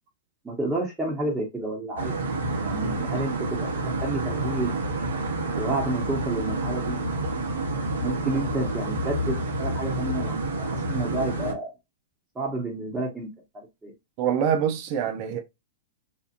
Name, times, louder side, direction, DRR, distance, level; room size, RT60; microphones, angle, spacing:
voice 1, 0.4-2.3 2.6-4.7 5.6-7.0 8.0-11.7 12.3-13.3 13.5-13.9, right 2 dB, 10° right, 1.1 m, -30 dB
sound 1, 2.0-11.5, right 2 dB, 80° right, 0.9 m, -28 dB
voice 2, 14.2-15.4, right 8 dB, 45° right, 0.6 m, -25 dB
2.8 x 2.4 x 2.5 m
hypercardioid pair, 120°, 0 cm